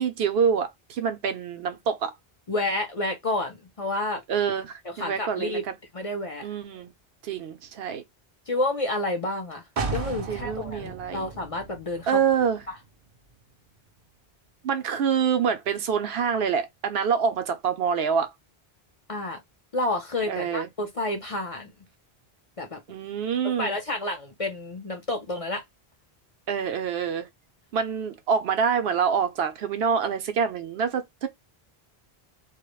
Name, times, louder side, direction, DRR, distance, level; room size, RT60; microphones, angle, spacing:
voice 1, 0.0-2.1 4.3-5.6 6.4-6.9 7.2-8.0 10.3-11.3 12.1-12.6 14.6-18.3 20.3-20.7 22.9-23.8 26.5-27.3 27.7-31.3, right 7 dB, 75° right, 0.8 m, -26 dB
voice 2, 2.5-4.2 4.8-5.6 5.9-6.4 8.5-9.6 9.9-12.2 12.7-12.8 19.1-19.4 19.7-21.7 22.6-22.8 23.4-25.6, left 2 dB, 40° left, 0.6 m, -29 dB
sound 1, 9.8-13.5 13.9-14.0, right 4 dB, 50° right, 0.5 m, -35 dB
2.3 x 2.1 x 2.9 m
omnidirectional pair, 1.0 m